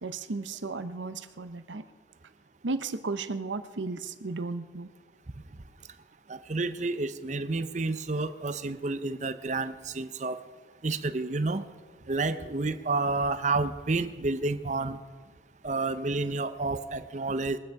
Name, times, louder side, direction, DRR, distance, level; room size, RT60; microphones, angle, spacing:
voice 1, 0.0-1.8 2.6-4.9, right 3 dB, 80° right, 11 dB, 0.8 m, -34 dB
voice 2, 6.3-10.4 10.8-11.6 12.1-15.0 15.6-17.6, right 3 dB, 40° right, 12 dB, 0.7 m, -30 dB
22.5 x 9.4 x 4.7 m, 1.4 s
head